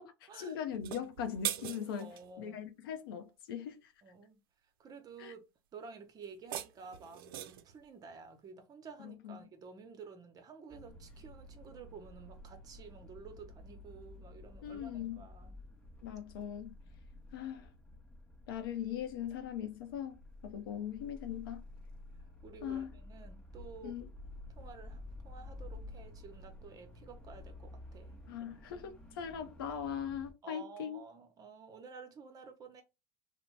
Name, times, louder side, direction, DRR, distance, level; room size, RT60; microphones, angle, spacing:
voice 1, 0.0-2.1 2.4-3.9 5.2-5.3 9.0-9.4 14.6-15.3 16.0-16.7 17.3-17.7 18.5-21.6 22.6-22.9 23.8-24.1 28.3-31.0, left 9 dB, 80° left, 0.6 m, -40 dB
sound 1, 0.7-2.3 6.2-7.7, right 11 dB, 85° right, 0.4 m, -41 dB
voice 2, 2.0-2.7 4.0-4.4 4.8-5.4 5.7-15.6 22.4-24.0 24.5-28.2 30.4-32.8, right 5 dB, 30° right, 0.8 m, -52 dB
sound 2, 10.7-30.3, left 2 dB, 5° left, 0.7 m, -52 dB
2.7 x 2.1 x 3.1 m
supercardioid pair, 110°, 12 cm